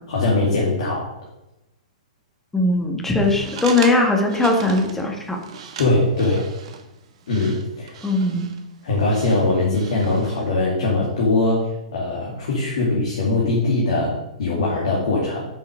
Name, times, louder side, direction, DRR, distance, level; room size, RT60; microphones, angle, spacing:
voice 1, 0.1-1.1 5.8-6.4 7.3-8.0 8.8-15.4, left 2 dB, 60° left, -3 dB, 2.5 m, -21 dB
voice 2, 2.5-5.4 8.0-8.5, left 2 dB, 5° left, 2 dB, 1.7 m, -19 dB
sound 1, 3.2-10.5, right 6 dB, 50° right, 1.4 m, -38 dB
9.0 x 5.7 x 5.0 m, 0.92 s
figure-of-eight pair, 115°, 4 cm